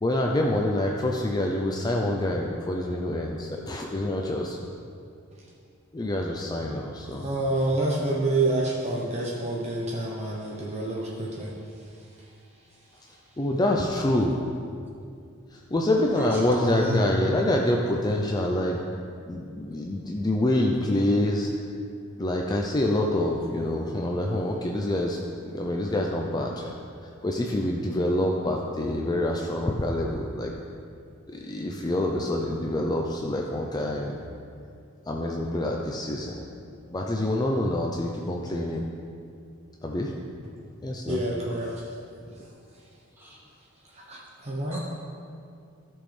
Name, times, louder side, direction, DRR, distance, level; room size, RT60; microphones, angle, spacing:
voice 1, 0.0-4.6 5.9-7.3 13.1-14.4 15.5-18.8 19.3-21.5 22.2-26.7 27.0-30.5 31.3-34.2 35.1-36.5 36.9-38.8 39.8-40.1 40.8-41.2, left 1 dB, 20° left, 0 dB, 0.5 m, -26 dB
voice 2, 7.2-11.5 41.1-41.8 44.0-44.8, right 2 dB, 30° right, -3 dB, 0.8 m, -28 dB
voice 3, 16.2-17.0 43.2-43.4 44.7-44.8, left 1 dB, 10° right, -6 dB, 1.9 m, -30 dB
13.5 x 6.2 x 3.3 m, 2.4 s
head